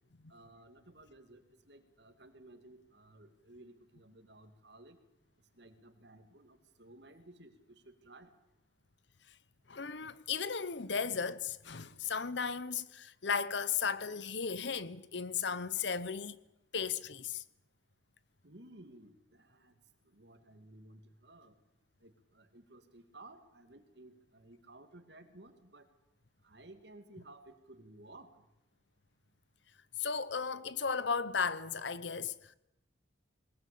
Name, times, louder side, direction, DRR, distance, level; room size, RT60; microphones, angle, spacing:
voice 1, 0.3-1.4 1.7-5.0 5.5-8.3 18.4-19.7 20.0-21.5 22.0-25.8 26.4-28.4, right 2 dB, 60° right, 2.5 m, -56 dB
voice 2, 9.7-16.4 16.7-17.4 30.0-32.5, left 6 dB, 65° left, 0.9 m, -35 dB
21.0 x 20.5 x 8.6 m
head